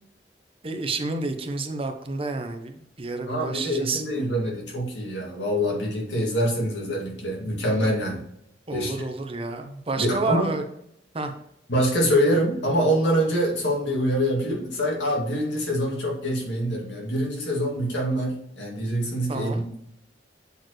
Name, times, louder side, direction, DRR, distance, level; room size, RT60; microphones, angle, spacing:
voice 1, 0.6-4.0 8.7-10.6 11.1-11.3 19.3-19.6, right 3 dB, 35° right, 6 dB, 0.7 m, -29 dB
voice 2, 3.3-8.2 8.7-9.0 10.0-10.5 11.7-19.8, equal, 90° left, -2 dB, 2.3 m, -25 dB
7.9 x 4.4 x 3.1 m, 0.74 s
head